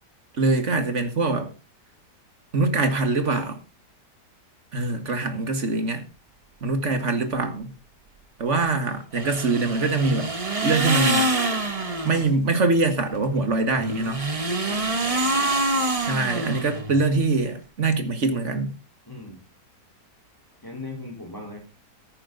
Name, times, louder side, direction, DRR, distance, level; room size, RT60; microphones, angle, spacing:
voice 1, 0.4-1.5 2.5-3.6 4.7-6.1 6.6-7.7 8.4-10.3 10.6-11.3 12.0-14.2 16.0-18.7, right 3 dB, 45° right, 1.9 m, -23 dB
sound 1, 9.1-12.3 13.7-17.1, right 2 dB, 20° right, 1.2 m, -25 dB
voice 2, 14.6-15.7 19.1-19.4 20.6-21.6, left 2 dB, 10° left, 4.1 m, -39 dB
14.5 x 10.0 x 3.9 m
omnidirectional pair, 1.8 m